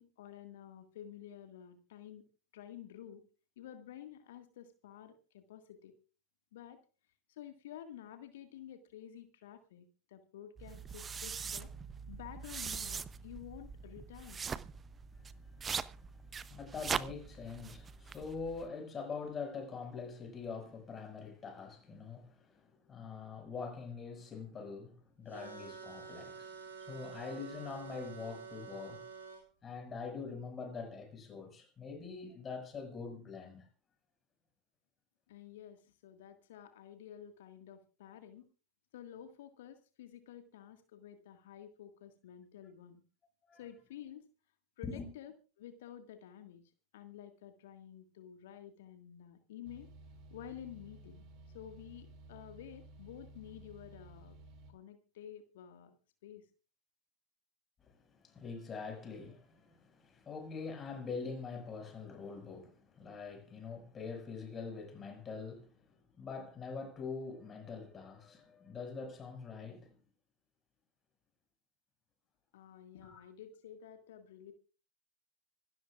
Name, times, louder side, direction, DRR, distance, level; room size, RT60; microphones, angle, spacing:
voice 1, 0.0-2.2 2.5-3.2 3.6-5.9 6.5-6.8 7.3-11.7 12.1-14.5 35.3-38.5 38.9-43.0 43.5-44.3 44.8-49.9 50.3-51.2 51.5-54.4 54.7-55.9 56.2-56.5 72.5-74.5, left 10 dB, 55° left, 1.8 m, -51 dB
sound 1, 10.6-18.7, right 6 dB, 20° right, 0.7 m, -42 dB
voice 2, 16.5-29.0 29.6-33.7 43.5-43.7 44.8-45.1 57.8-65.8 66.2-70.0 73.0-73.2, left 5 dB, 20° left, 5.9 m, -44 dB
sound 2, 25.3-29.4, right 5 dB, 70° right, 6.9 m, -48 dB
sound 3, 49.6-54.7, right 2 dB, 40° right, 2.5 m, -55 dB
26.0 x 13.0 x 2.4 m
figure-of-eight pair, 90°, 0 cm